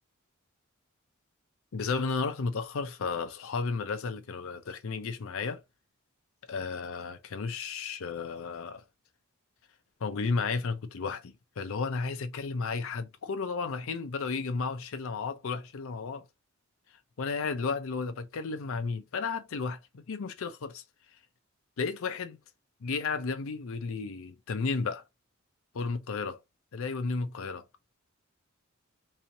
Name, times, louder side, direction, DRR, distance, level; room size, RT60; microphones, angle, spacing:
voice 1, 1.7-5.6 6.5-8.8 10.0-16.3 17.2-20.8 21.8-22.4 22.8-25.0 25.7-26.4 26.7-27.6, left 4 dB, 70° left, 0.5 m, -33 dB
3.1 x 2.6 x 3.9 m
head